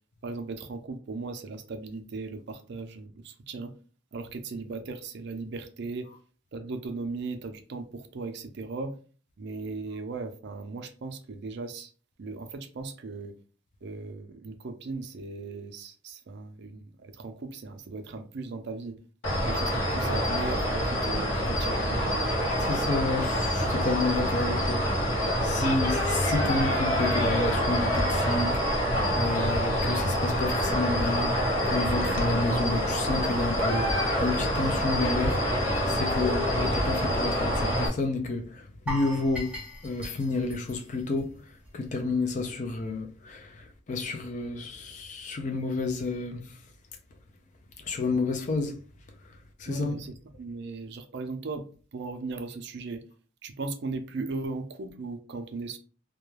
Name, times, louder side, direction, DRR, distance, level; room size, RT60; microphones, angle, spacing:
voice 1, 0.2-3.7 4.1-6.1 6.5-8.9 9.4-11.9 12.2-13.3 13.8-19.0 19.3-22.2 49.7-51.6 51.9-53.0 53.4-55.8, right 3 dB, 55° right, 0.4 m, -37 dB
sound 1, 19.2-37.9, equal, 70° left, 0.8 m, -26 dB
voice 2, 22.6-35.4 35.8-41.4 41.7-46.4 47.8-48.8 49.6-49.9, left 3 dB, 40° left, 0.4 m, -30 dB
sound 2, 38.9-41.9 42.1-42.3 42.8-42.9, equal, 5° right, 0.6 m, -39 dB
2.3 x 2.1 x 3.1 m
head